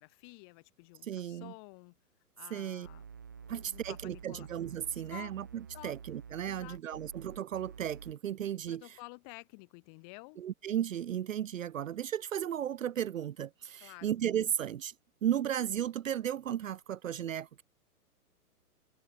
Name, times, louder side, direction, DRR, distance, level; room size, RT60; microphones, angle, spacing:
voice 1, 0.0-2.0 2.4-3.0 3.3-4.5 4.9-5.3 5.7-6.0 6.4-7.2 8.7-10.4 13.8-14.2, left 36 dB, 15° left, 1.5 m, -51 dB
voice 2, 1.0-1.5 2.5-2.9 3.5-8.8 10.4-14.9 15.2-17.6, right 10 dB, 60° right, 0.7 m, -35 dB
sound 1, 2.8-8.1, right 6 dB, 15° right, 0.6 m, -49 dB
hypercardioid pair, 170°, 46 cm